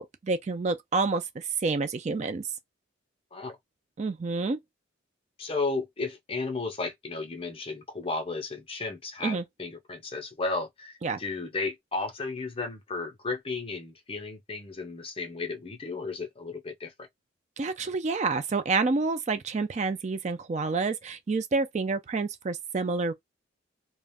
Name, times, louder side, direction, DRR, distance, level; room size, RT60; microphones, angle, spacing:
voice 1, 0.0-2.4 4.0-4.6 9.2-9.4 11.0-11.2 17.6-23.1, right 3 dB, 35° right, 0.3 m, -28 dB
voice 2, 5.4-17.1, left 3 dB, 25° left, 0.6 m, -34 dB
2.4 x 2.1 x 3.4 m
head